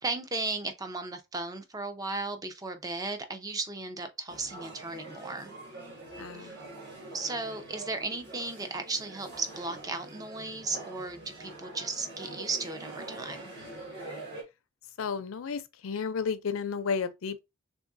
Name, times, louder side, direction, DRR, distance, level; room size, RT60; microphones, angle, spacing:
voice 1, 0.0-5.5 6.4-6.6 7.1-13.5, right 3 dB, 15° right, 0.5 m, -35 dB
sound 1, 4.3-14.4, right 2 dB, 50° right, 1.6 m, -45 dB
voice 2, 6.2-6.6 15.0-17.4, left 5 dB, 70° left, 0.5 m, -32 dB
3.5 x 3.4 x 2.6 m
head